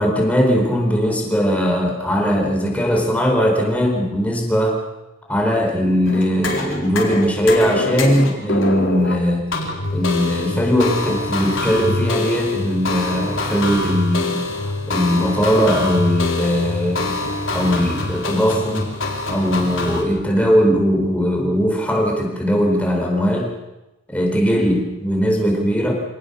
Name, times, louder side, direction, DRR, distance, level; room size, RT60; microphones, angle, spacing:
voice 1, 0.0-4.8 5.3-9.5 9.9-17.1 17.5-18.9 19.3-23.5 24.1-26.0, equal, 5° left, 0 dB, 4.5 m, -19 dB
sound 1, 6.1-20.0, left 2 dB, 85° left, 4.5 m, -25 dB
26.5 x 18.5 x 7.0 m, 1.0 s
head